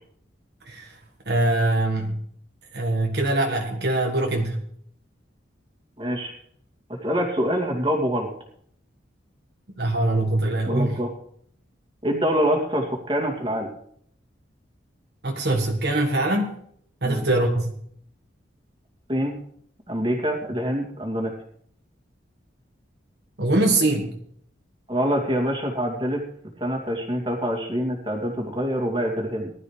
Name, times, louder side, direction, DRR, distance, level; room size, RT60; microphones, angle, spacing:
voice 1, 0.6-1.0 1.2-2.2 2.7-4.6 9.8-11.0 15.2-16.5 17.0-17.7 23.4-24.1, right 2 dB, 60° right, 1 dB, 1.5 m, -23 dB
voice 2, 6.0-6.3 6.9-8.3 10.7-11.1 12.0-13.7 17.0-17.2 19.1-19.3 19.9-21.3 24.9-26.2 26.6-29.5, equal, 25° right, 0 dB, 2.6 m, -25 dB
19.5 x 12.5 x 3.3 m, 0.66 s
head